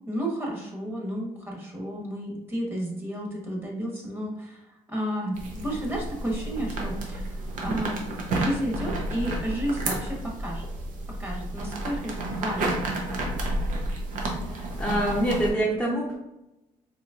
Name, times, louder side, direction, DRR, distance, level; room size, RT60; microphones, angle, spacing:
voice 1, 0.1-10.7 11.2-12.9, right 1 dB, 15° right, -2 dB, 1.2 m, -32 dB
sound 1, 5.3-15.5, right 2 dB, 70° right, 0.8 m, -31 dB
voice 2, 14.5-16.2, right 1 dB, 5° left, -7 dB, 0.8 m, -26 dB
3.9 x 3.0 x 2.4 m, 0.89 s
cardioid pair, 100°, 14 cm